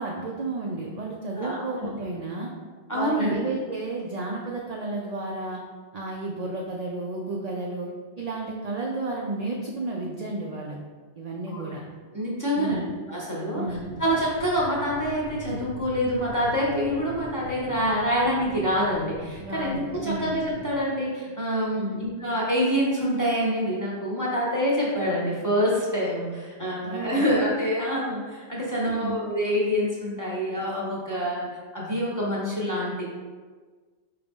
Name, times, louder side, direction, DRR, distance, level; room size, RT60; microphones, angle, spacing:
voice 1, 0.0-2.5 2.9-5.6 5.9-7.9 8.2-10.8 11.2-11.8 12.6-13.0 13.5-14.0 19.4-20.4 21.8-22.1 26.8-27.3 28.8-29.2, right 2 dB, 55° right, -2 dB, 0.4 m, -32 dB
voice 2, 1.4-1.9 2.9-3.3 11.5-11.6 12.1-13.6 14.0-31.5 31.7-33.0, equal, 20° left, -6 dB, 0.7 m, -26 dB
sound 1, 13.6-20.8, right 1 dB, 85° left, 1.0 m, -43 dB
4.8 x 2.8 x 3.5 m, 1.4 s
omnidirectional pair, 1.2 m